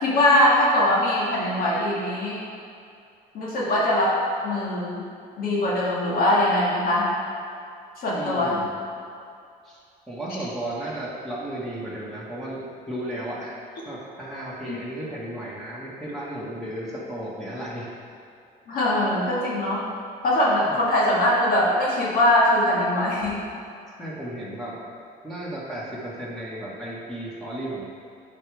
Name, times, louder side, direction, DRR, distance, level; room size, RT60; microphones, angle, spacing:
voice 1, 0.0-2.4 3.3-4.2 4.4-5.0 5.4-7.1 8.0-8.6 14.6-14.8 18.7-19.8 20.2-23.4, left 1 dB, 60° left, -5 dB, 1.7 m, -21 dB
voice 2, 8.1-8.8 9.6-9.8 10.1-13.6 13.8-17.9 24.0-24.7 25.2-27.8, right 1 dB, ahead, -8 dB, 1.5 m, -34 dB
9.8 x 5.1 x 3.4 m, 2.4 s
cardioid pair, 110°, 17 cm